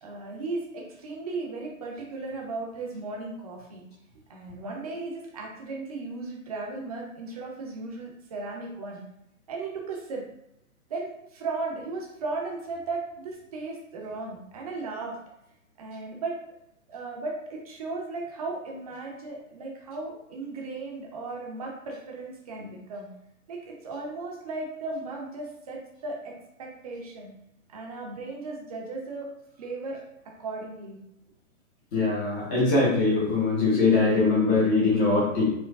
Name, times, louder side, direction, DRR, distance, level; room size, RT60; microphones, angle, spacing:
voice 1, 0.0-3.8 4.3-9.0 9.5-10.2 10.9-15.1 15.8-16.4 16.9-23.1 23.5-26.3 26.6-27.3 27.7-29.3 29.6-30.0 30.4-31.0, right 3 dB, 25° right, -1 dB, 0.6 m, -36 dB
voice 2, 31.9-35.5, left 3 dB, 15° left, -8 dB, 0.6 m, -22 dB
4.6 x 2.2 x 2.3 m, 0.79 s
figure-of-eight pair, 125°, 42 cm